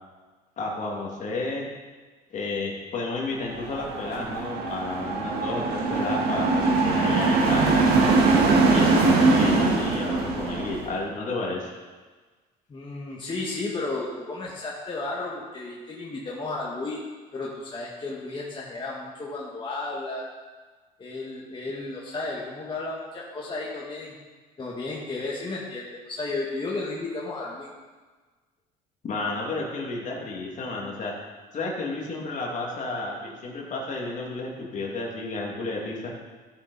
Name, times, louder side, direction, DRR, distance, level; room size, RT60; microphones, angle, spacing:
voice 1, 0.6-1.7 2.3-7.9 8.4-11.7 29.0-31.1 31.5-36.1, left 3 dB, 45° left, -1 dB, 2.3 m, -31 dB
sound 1, 3.5-10.9, right 3 dB, 70° right, 1.8 m, -22 dB
voice 2, 12.7-17.0 17.3-20.3 21.0-24.1 24.6-27.7, left 2 dB, 30° left, -4 dB, 1.6 m, -33 dB
14.0 x 6.8 x 4.1 m, 1.4 s
cardioid pair, 110°, 17 cm